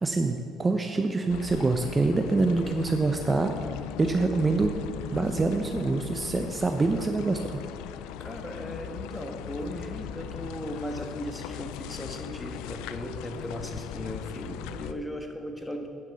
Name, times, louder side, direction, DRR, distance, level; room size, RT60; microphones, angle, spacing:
voice 1, 0.0-3.5 4.0-4.7 5.1-7.6, right 3 dB, 25° right, 5 dB, 0.7 m, -25 dB
sound 1, 1.3-14.9, left 10 dB, 85° left, 0.4 m, -39 dB
voice 2, 8.2-15.9, equal, 10° left, 4 dB, 1.4 m, -37 dB
9.3 x 5.9 x 7.0 m, 2.7 s
supercardioid pair, 80°, 0 cm